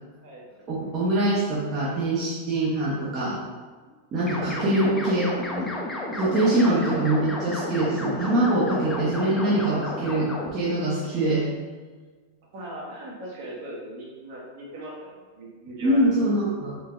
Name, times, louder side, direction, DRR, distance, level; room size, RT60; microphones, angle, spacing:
voice 1, 0.7-3.4 4.1-5.7 6.2-11.5 15.8-16.7, right 1 dB, 30° right, -7 dB, 0.7 m, -24 dB
voice 2, 4.1-5.2 6.5-7.4 8.9-9.1 9.5-9.8 12.5-16.3, right 1 dB, 55° right, -4 dB, 1.3 m, -39 dB
sound 1, 4.2-10.5, left 1 dB, 10° left, 0.5 m, -32 dB
3.9 x 2.2 x 3.6 m, 1.4 s
supercardioid pair, 150°, 0 cm